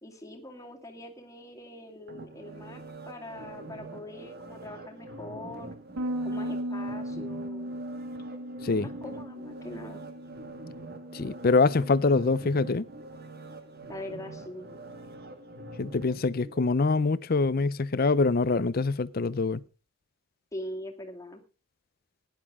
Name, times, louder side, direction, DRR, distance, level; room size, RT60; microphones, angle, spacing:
voice 1, 0.0-5.7 6.2-7.7 8.7-10.1 13.9-14.7 20.5-21.4, left 1 dB, 15° left, 2.2 m, -42 dB
sound 1, 2.1-17.1 17.6-17.7, right 2 dB, 50° right, 1.7 m, -45 dB
Bass guitar, 6.0-12.2, equal, 90° right, 1.0 m, -37 dB
voice 2, 11.1-12.9 15.8-19.6, left 3 dB, 45° left, 0.6 m, -24 dB
16.5 x 10.5 x 3.6 m
head